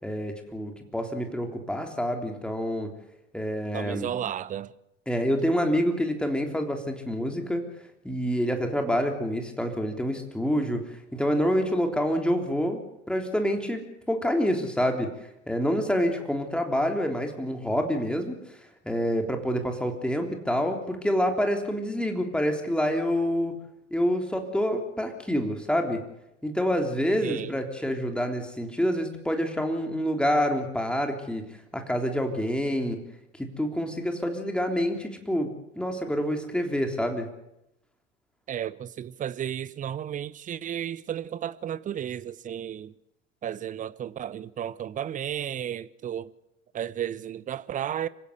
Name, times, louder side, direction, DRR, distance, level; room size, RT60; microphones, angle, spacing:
voice 1, 0.0-2.9 3.3-4.1 5.1-7.7 8.0-18.6 18.8-23.6 23.9-26.0 26.4-31.4 31.7-33.0 33.6-37.3, equal, 5° left, 3.4 m, -27 dB
voice 2, 3.7-4.7 27.2-27.6 38.5-42.9 43.4-46.3 46.7-48.1, right 10 dB, 20° right, 0.7 m, -33 dB
26.0 x 16.0 x 8.0 m
figure-of-eight pair, 75°, 36 cm